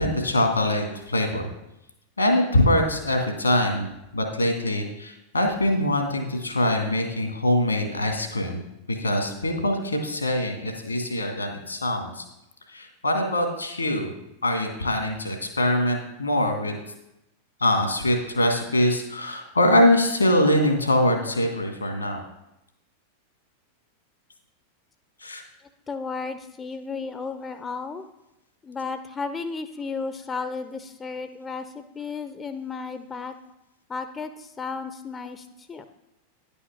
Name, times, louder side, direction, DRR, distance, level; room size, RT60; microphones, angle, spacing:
voice 1, 0.0-1.4 2.2-3.9 4.1-8.6 8.9-12.2 12.7-14.1 14.4-16.7 17.6-22.2 25.2-25.4, left 1 dB, 85° left, 4 dB, 1.8 m, -23 dB
voice 2, 25.9-28.0 28.6-33.4 33.9-35.9, left 4 dB, 20° left, 9 dB, 0.6 m, -33 dB
10.0 x 5.6 x 5.9 m, 0.86 s
figure-of-eight pair, 90°, 0 cm